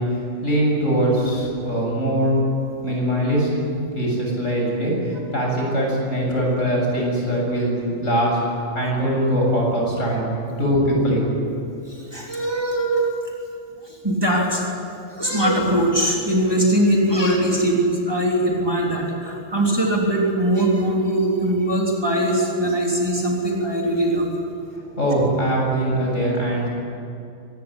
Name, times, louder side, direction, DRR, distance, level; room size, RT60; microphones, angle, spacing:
voice 1, 0.0-2.5 2.8-8.4 8.7-10.3 10.6-11.5 24.9-26.7, right 1 dB, 60° left, -1 dB, 7.9 m, -22 dB
voice 2, 11.9-13.1 13.9-14.6 15.1-24.3, right 1 dB, 15° right, -2 dB, 3.8 m, -21 dB
24.5 x 20.5 x 10.0 m, 2.6 s
omnidirectional pair, 1.4 m